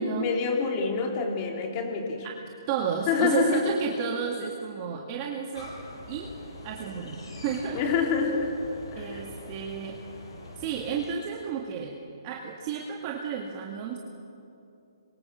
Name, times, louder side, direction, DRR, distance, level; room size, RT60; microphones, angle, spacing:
voice 1, 0.0-2.3 3.1-3.6 7.7-8.5 8.9-9.2, left 5 dB, 30° left, 2 dB, 3.7 m, -27 dB
voice 2, 2.7-5.7 6.1-6.4 6.6-7.8 9.0-10.0 10.6-12.0 12.2-14.0, right 7 dB, 30° right, 0 dB, 2.3 m, -32 dB
sound 1, 5.5-11.1, left 2 dB, 65° left, 7.7 m, -44 dB
27.5 x 23.0 x 7.3 m, 2.6 s
hypercardioid pair, 150°, 3 cm